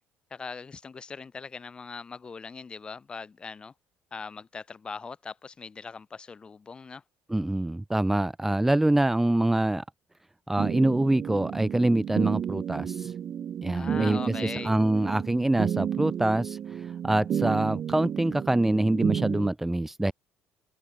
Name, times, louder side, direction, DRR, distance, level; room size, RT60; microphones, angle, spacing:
voice 1, 0.3-3.7 4.1-7.0 13.7-14.7, left 5 dB, 20° left, 5.7 m, -40 dB
voice 2, 7.3-9.8 10.5-13.1 13.6-20.1, right 1 dB, 5° right, 1.3 m, -25 dB
sound 1, 10.6-19.5, right 9 dB, 40° right, 3.2 m, -32 dB
open air
cardioid pair, 160°, 5 cm